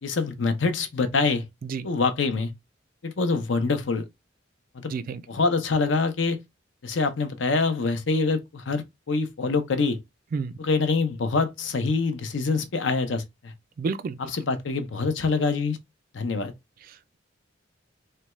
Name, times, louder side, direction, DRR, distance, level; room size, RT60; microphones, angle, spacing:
voice 1, 0.0-1.4 1.8-2.5 3.0-4.1 4.7-4.9 5.3-6.4 6.8-10.0 10.6-13.5 14.2-15.8 16.1-16.5, left 4 dB, 70° left, 0.6 m, -25 dB
voice 2, 4.9-5.2 10.3-10.5 13.8-14.2, right 4 dB, 45° right, 0.3 m, -29 dB
3.3 x 2.2 x 3.0 m
head